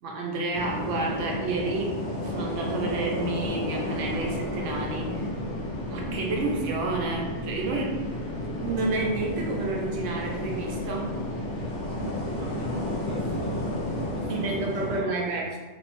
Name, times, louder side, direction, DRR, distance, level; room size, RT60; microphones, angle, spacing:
voice 1, 0.0-5.3 5.9-8.1 8.6-11.2 14.3-15.6, right 2 dB, 85° right, -1 dB, 0.9 m, -30 dB
sound 1, 0.5-15.0, left 1 dB, 75° left, 0.9 m, -32 dB
sound 2, 4.0-14.1, right 3 dB, 15° left, 0.6 m, -44 dB
voice 2, 12.3-13.6 13.9-15.5, equal, 55° right, -3 dB, 0.8 m, -42 dB
2.8 x 2.0 x 3.0 m, 1.2 s
omnidirectional pair, 1.2 m